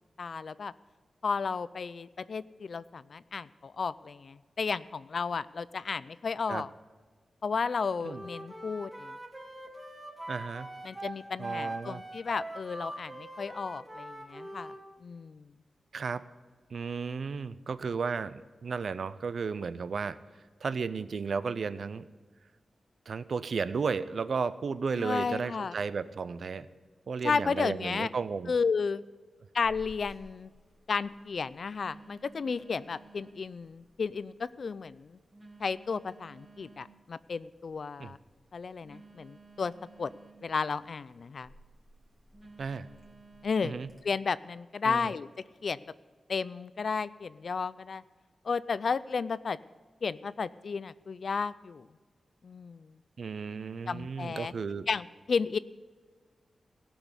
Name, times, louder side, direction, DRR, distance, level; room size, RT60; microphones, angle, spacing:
voice 1, 0.2-0.7 1.2-6.7 7.4-9.2 10.8-14.7 15.0-15.5 24.9-25.7 27.2-28.1 28.5-29.0 29.5-30.5 30.9-35.2 35.6-38.2 38.5-39.7 40.0-40.1 40.4-41.5 43.4-43.8 44.0-45.3 45.6-45.9 46.3-48.0 48.4-49.6 50.0-51.9 52.4-52.9 53.9-54.5 54.9-55.6, left 5 dB, 55° left, 17 dB, 0.3 m, -33 dB
Wind instrument woodwind instrument, 8.0-14.8, right 1 dB, 10° right, 1.5 m, -42 dB
voice 2, 10.3-10.7 11.4-12.0 15.9-16.2 16.7-20.2 20.6-22.0 23.1-26.7 27.1-28.5 38.0-38.1 42.6-42.9 43.6-43.9 44.8-45.1 53.2-54.9, right 5 dB, 60° right, 14 dB, 0.5 m, -34 dB
Telephone, 29.6-44.0, right 2 dB, 30° right, 2.3 m, -56 dB
17.0 x 6.2 x 8.1 m, 1.4 s
wide cardioid pair, 160°, 0 cm